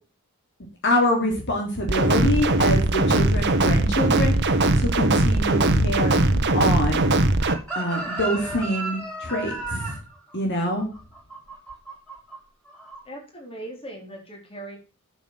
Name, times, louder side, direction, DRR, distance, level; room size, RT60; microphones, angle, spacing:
voice 1, 0.8-7.1 7.8-10.0 10.3-10.9, left 1 dB, 55° left, 0 dB, 3.3 m, -25 dB
sound 1, 1.9-7.5, right 2 dB, 55° right, 1.3 m, -20 dB
Chicken rooster, 7.4-12.4 12.7-13.0, right 3 dB, 5° left, 4.8 m, -33 dB
voice 2, 13.0-14.8, right 1 dB, 25° left, 1 dB, 4.3 m, -39 dB
9.3 x 7.5 x 7.7 m, 0.34 s
head